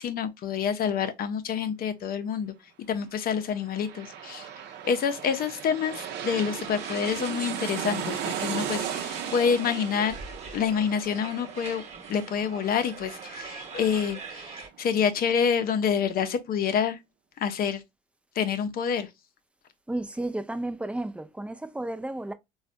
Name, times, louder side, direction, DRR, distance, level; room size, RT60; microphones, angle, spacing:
voice 1, 0.0-2.5 2.9-4.5 4.8-10.2 10.5-11.8 12.1-17.0 17.4-17.8 18.4-19.1, left 7 dB, 50° left, 0.7 m, -27 dB
sound 1, 3.4-14.8 15.1-15.2, right 9 dB, 60° right, 0.7 m, -37 dB
sound 2, 6.6-14.7, right 5 dB, 35° right, 1.1 m, -43 dB
voice 2, 19.9-22.3, right 1 dB, 5° right, 0.5 m, -32 dB
4.0 x 2.4 x 2.6 m
hypercardioid pair, 70°, 19 cm